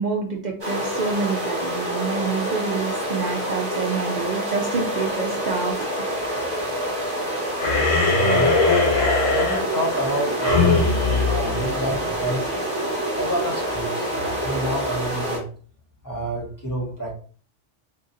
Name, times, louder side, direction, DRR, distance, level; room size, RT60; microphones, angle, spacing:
voice 1, 0.0-6.1 6.3-6.6, right 5 dB, 60° right, 0 dB, 0.4 m, -28 dB
sound 1, 0.6-15.4, right 1 dB, 10° right, 1.4 m, -27 dB
voice 2, 6.2-6.7 8.1-8.7 9.3-12.7 13.1-15.4 16.0-17.1, right 1 dB, 20° left, -4 dB, 0.8 m, -28 dB
sound 2, 7.6-12.3, left 3 dB, 80° left, 1.3 m, -21 dB
3.7 x 2.6 x 2.6 m, 0.42 s
omnidirectional pair, 1.3 m